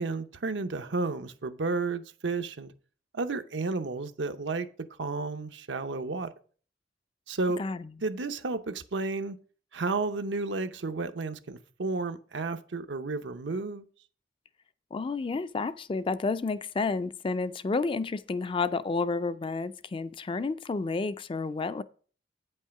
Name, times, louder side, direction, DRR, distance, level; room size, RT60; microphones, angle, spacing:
voice 1, 0.0-2.7 3.1-4.7 5.0-6.3 7.3-7.6 8.0-9.4 9.7-13.8, right 3 dB, 80° right, 0.8 m, -32 dB
voice 2, 14.9-21.8, left 4 dB, 30° left, 0.3 m, -30 dB
8.7 x 5.5 x 5.8 m
head